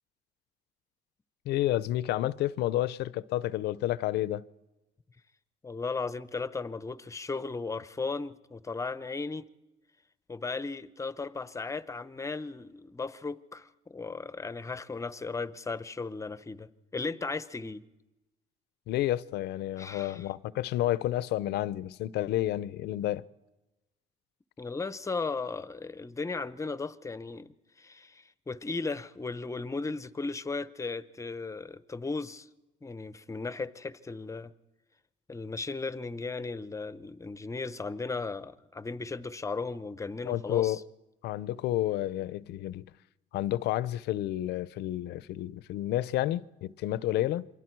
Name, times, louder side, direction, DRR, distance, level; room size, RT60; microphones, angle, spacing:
voice 1, 1.5-4.4 18.9-23.2 40.2-40.8 41.2-42.9 43.3-47.5, left 14 dB, 75° left, 0.6 m, -30 dB
voice 2, 5.6-9.5 10.3-17.8 19.8-20.3 24.6-32.5 32.8-34.5 35.3-40.8, left 4 dB, 20° left, 0.8 m, -36 dB
28.0 x 23.5 x 4.6 m
cardioid pair, 110°, 17 cm